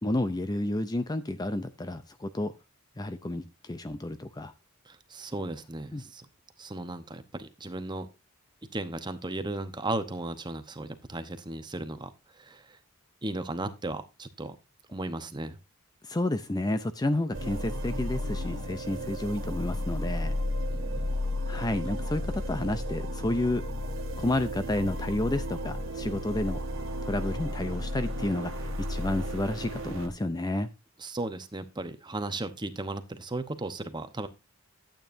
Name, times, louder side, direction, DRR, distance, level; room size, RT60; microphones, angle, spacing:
voice 1, 0.0-2.5 3.0-4.5 5.9-6.0 16.0-20.3 21.5-23.6 24.2-26.6 27.0-30.7, left 1 dB, 20° left, 11 dB, 0.5 m, -30 dB
voice 2, 4.9-6.3 6.6-8.1 8.7-12.1 12.4-12.8 13.2-14.6 14.9-15.6 20.7-21.0 31.0-34.3, right 2 dB, 20° right, 10 dB, 0.9 m, -36 dB
sound 1, 17.3-30.1, left 1 dB, 60° right, 1.7 m, -33 dB
12.0 x 8.8 x 2.6 m, 0.25 s
head